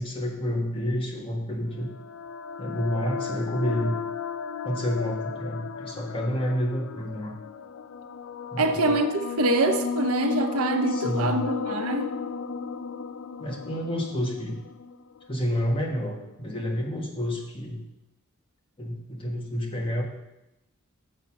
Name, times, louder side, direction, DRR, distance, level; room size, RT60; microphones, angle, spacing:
voice 1, 0.0-1.9 2.6-4.0 4.6-7.3 8.5-8.8 10.9-11.5 13.4-14.6 15.3-17.8 18.8-20.0, equal, 25° left, -1 dB, 1.5 m, -29 dB
sound 1, 1.8-15.4, left 5 dB, 65° left, 0.4 m, -34 dB
voice 2, 8.6-12.1, right 2 dB, 80° right, 6 dB, 0.8 m, -25 dB
8.0 x 6.5 x 5.9 m, 0.92 s
head